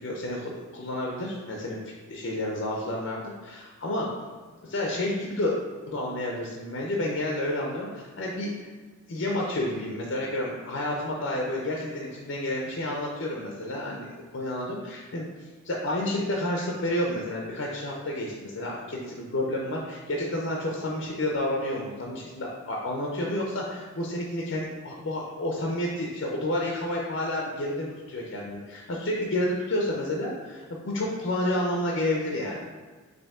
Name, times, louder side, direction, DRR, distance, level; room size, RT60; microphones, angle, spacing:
voice 1, 0.0-1.8 2.1-4.1 4.6-5.6 5.9-8.5 9.1-32.6, left 1 dB, 60° left, -1 dB, 0.6 m, -30 dB
5.3 x 2.7 x 3.6 m, 1.4 s
head